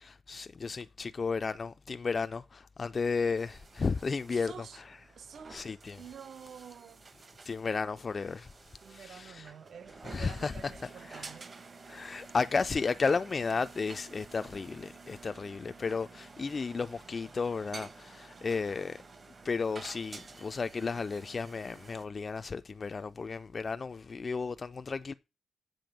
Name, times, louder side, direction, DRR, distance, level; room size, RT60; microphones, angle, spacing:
voice 1, 0.0-4.9 5.5-6.0 7.5-8.5 8.9-9.5 10.0-10.5 11.1-11.3 11.9-19.0 19.4-25.1, left 4 dB, 45° left, 0.4 m, -33 dB
sound 1, 3.4-22.1, right 4 dB, 45° right, 1.1 m, -51 dB
voice 2, 4.3-4.8 5.2-5.7 6.0-7.0 8.8-11.5, right 7 dB, 70° right, 0.9 m, -48 dB
7.6 x 6.8 x 5.2 m
cardioid pair, 80°, 0 cm